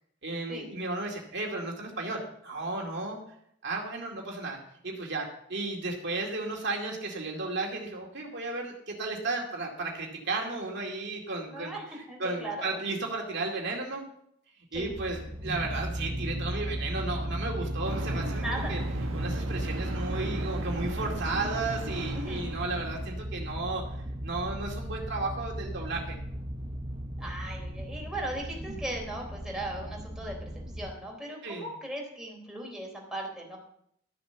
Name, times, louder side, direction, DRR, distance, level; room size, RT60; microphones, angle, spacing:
voice 1, 0.2-3.2 3.6-4.6 4.8-11.7 12.2-14.0 14.6-18.8 19.1-26.2 31.4-31.7, right 3 dB, 60° right, 0 dB, 2.3 m, -34 dB
voice 2, 11.5-12.8 14.7-14.9 18.4-18.8 22.1-22.5 27.2-33.6, right 1 dB, 5° right, -2 dB, 3.5 m, -38 dB
sound 1, 14.7-30.9, right 1 dB, 30° right, 0.9 m, -36 dB
sound 2, 17.8-23.2, right 1 dB, 85° right, 1.7 m, -37 dB
13.0 x 7.1 x 6.9 m, 0.71 s
head